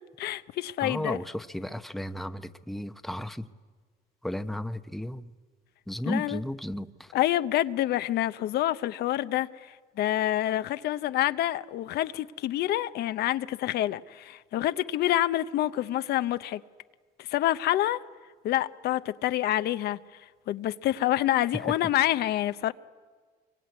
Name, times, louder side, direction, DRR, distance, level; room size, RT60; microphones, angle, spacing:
voice 1, 0.0-1.2 6.1-6.4 7.1-16.6 17.2-18.0 18.4-20.0 20.5-22.7, left 13 dB, 70° left, 0.8 m, -27 dB
voice 2, 0.8-3.5 4.2-5.3 5.9-7.1 21.5-21.7, left 1 dB, ahead, 0.8 m, -34 dB
25.5 x 23.0 x 9.5 m
cardioid pair, 110°, 17 cm